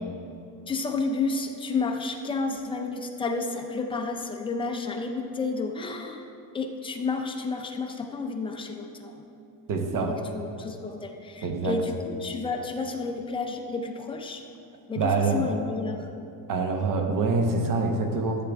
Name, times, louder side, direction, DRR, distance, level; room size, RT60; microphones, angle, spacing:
voice 1, 0.7-6.2 6.5-9.2 10.0-14.4 14.9-16.1, left 4 dB, 10° left, 3 dB, 0.4 m, -31 dB
voice 2, 9.7-10.1 11.4-11.8 15.0-15.5 16.5-18.4, right 3 dB, 45° right, 4 dB, 1.1 m, -25 dB
14.0 x 7.7 x 3.5 m, 2.7 s
cardioid pair, 155°, 46 cm